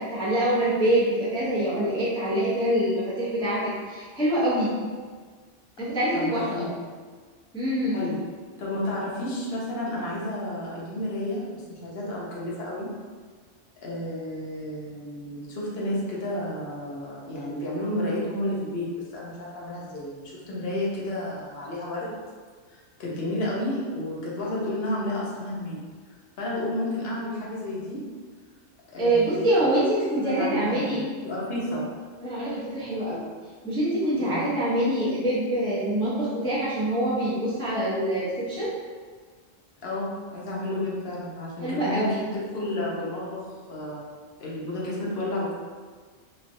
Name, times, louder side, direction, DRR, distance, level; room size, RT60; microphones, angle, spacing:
voice 1, 0.0-4.7 5.8-6.6 7.5-8.0 29.0-31.0 32.2-33.2 33.6-38.7 41.6-42.1, right 1 dB, 5° left, -9 dB, 0.4 m, -25 dB
voice 2, 6.1-6.8 7.9-8.2 8.6-12.9 13.8-22.1 22.7-25.8 26.4-28.0 28.9-29.7 30.2-31.8 34.2-34.5 39.8-44.0 44.4-45.5, left 1 dB, 55° left, -5 dB, 0.9 m, -31 dB
3.2 x 2.3 x 2.5 m, 1.5 s
omnidirectional pair, 1.3 m